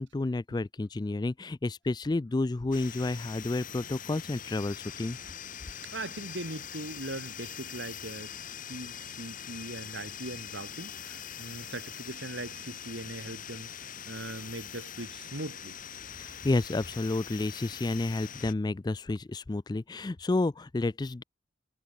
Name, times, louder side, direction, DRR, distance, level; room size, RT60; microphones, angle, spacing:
voice 1, 0.0-5.2 16.2-21.2, left 2 dB, 20° left, 0.3 m, -30 dB
sound 1, 2.7-18.5, left 8 dB, 40° left, 2.6 m, -43 dB
voice 2, 5.9-8.3 8.7-15.8, right 1 dB, 65° right, 4.9 m, -40 dB
head